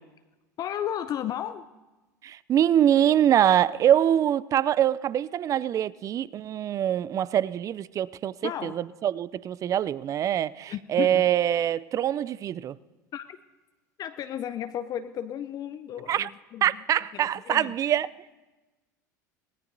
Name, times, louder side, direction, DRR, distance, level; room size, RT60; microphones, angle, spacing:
voice 1, 0.6-1.7 8.4-8.8 10.7-11.2 13.1-13.4 14.0-16.8 17.4-17.7, left 10 dB, 40° left, 0.5 m, -33 dB
voice 2, 2.2-12.8 16.1-16.3 16.6-18.1, right 10 dB, 35° right, 0.3 m, -24 dB
23.5 x 17.0 x 2.6 m
hypercardioid pair, 80°, 10 cm